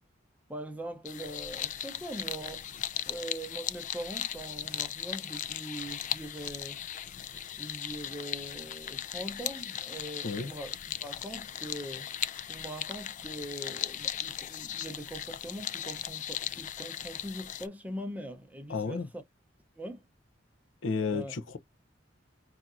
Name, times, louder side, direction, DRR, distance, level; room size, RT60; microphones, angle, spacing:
voice 1, 0.5-2.7 3.1-6.8 7.6-12.1 12.5-19.2 19.8-20.1 21.1-21.3, right 1 dB, 10° right, 0.6 m, -42 dB
sound 1, 1.1-17.7, left 10 dB, 40° left, 0.3 m, -37 dB
voice 2, 18.7-19.1 20.8-21.6, left 4 dB, 80° left, 0.6 m, -32 dB
5.7 x 2.6 x 2.5 m
head